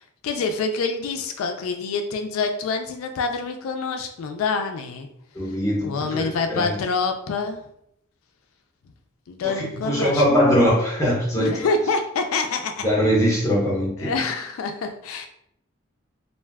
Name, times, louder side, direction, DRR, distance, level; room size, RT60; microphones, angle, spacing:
voice 1, 0.0-5.1 5.5-5.6 5.8-7.6 9.3-10.2 11.4-12.9 14.0-15.3, left 4 dB, 90° left, 6 dB, 0.3 m, -26 dB
voice 2, 5.3-6.7 9.4-11.7 12.8-14.1, equal, 15° left, -5 dB, 0.9 m, -21 dB
2.4 x 2.2 x 3.3 m, 0.75 s
head